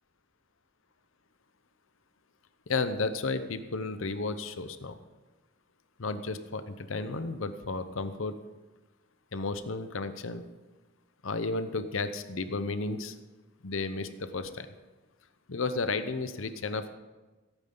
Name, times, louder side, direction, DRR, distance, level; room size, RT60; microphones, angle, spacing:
voice 1, 2.7-4.9 6.0-8.3 9.3-10.4 11.2-13.1 13.6-14.7 15.5-16.9, left 3 dB, 70° left, 10 dB, 0.8 m, -33 dB
16.5 x 8.9 x 3.9 m, 1.2 s
head